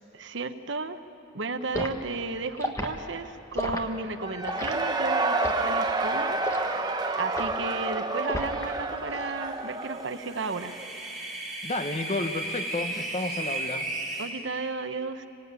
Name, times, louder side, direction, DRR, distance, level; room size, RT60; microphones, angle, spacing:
voice 1, 0.1-1.0 1.3-6.4 7.2-10.7 14.2-15.3, right 3 dB, 65° right, 9 dB, 1.0 m, -33 dB
Liquid, 1.7-2.0 2.6-2.9 3.5-3.8 4.4-4.7 5.4-5.7 6.4-6.7 7.3-7.6 8.3-8.7 9.0-9.3, left 1 dB, 15° left, 1.4 m, -32 dB
Cheering / Crowd, 4.2-10.9, right 3 dB, 20° right, 1.1 m, -29 dB
sound 1, 10.0-14.3, right 2 dB, ahead, 3.9 m, -35 dB
voice 2, 11.6-13.9, left 2 dB, 35° left, 8 dB, 1.1 m, -31 dB
25.5 x 17.5 x 9.6 m, 2.8 s
head